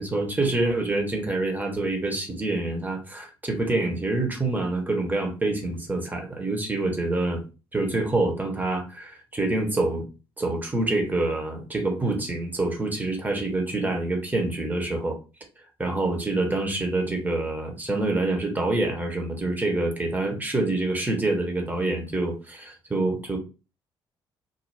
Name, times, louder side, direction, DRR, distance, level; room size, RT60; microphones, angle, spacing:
voice 1, 0.0-7.4 7.7-10.1 10.4-15.2 15.8-23.4, right 2 dB, 15° right, 2 dB, 1.0 m, -26 dB
2.6 x 2.2 x 3.3 m, 0.31 s
figure-of-eight pair, 45°, 13 cm